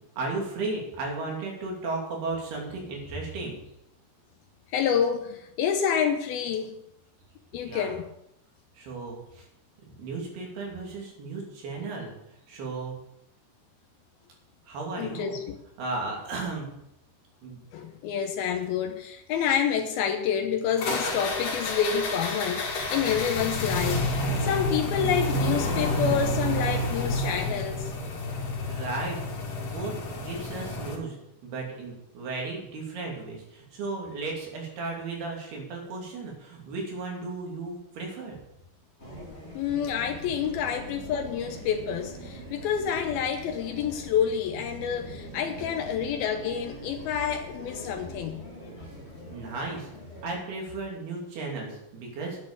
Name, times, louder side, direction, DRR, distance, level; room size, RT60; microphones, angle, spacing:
voice 1, 0.2-3.6 7.6-7.9 8.7-9.5 10.0-12.1 12.5-12.9 14.7-15.4 15.8-16.7 17.4-17.6 28.7-29.2 29.6-38.4 45.6-45.7 49.3-49.9 50.2-52.4, right 3 dB, 75° right, -1 dB, 4.8 m, -35 dB
voice 2, 4.7-6.8 7.5-8.0 15.0-15.6 17.7-24.1 24.4-27.9 39.5-48.4, left 8 dB, 75° left, 5 dB, 2.7 m, -28 dB
sound 1, 20.8-31.0, left 1 dB, 60° left, 3.8 m, -29 dB
sound 2, 39.0-50.4, left 1 dB, 25° left, 1.5 m, -45 dB
Animal, 39.6-44.2 44.5-48.4, right 4 dB, 60° right, 3.8 m, -45 dB
10.5 x 8.8 x 6.9 m, 0.81 s
omnidirectional pair, 4.6 m